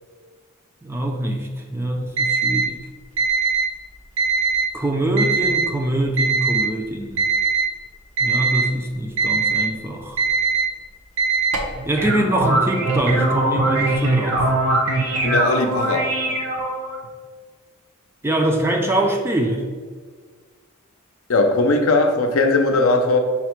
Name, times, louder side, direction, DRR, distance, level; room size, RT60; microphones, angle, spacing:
voice 1, 0.8-2.8 4.7-7.2 8.2-10.2 11.9-14.5 18.2-19.7, right 1 dB, 10° right, 2 dB, 0.4 m, -23 dB
Alarm, 2.2-2.6 3.2-3.6 4.2-4.6 5.2-5.6 6.2-6.6 7.2-7.6 8.2-8.6 9.2-9.6 10.2-10.6 11.2-11.7, right 4 dB, 90° right, 0.8 m, -20 dB
sound 1, 11.7-17.0, right 2 dB, 60° right, 0.9 m, -21 dB
voice 2, 15.2-16.4 21.3-23.2, left 2 dB, 70° left, 4 dB, 0.5 m, -19 dB
5.6 x 2.1 x 4.4 m, 1.6 s
head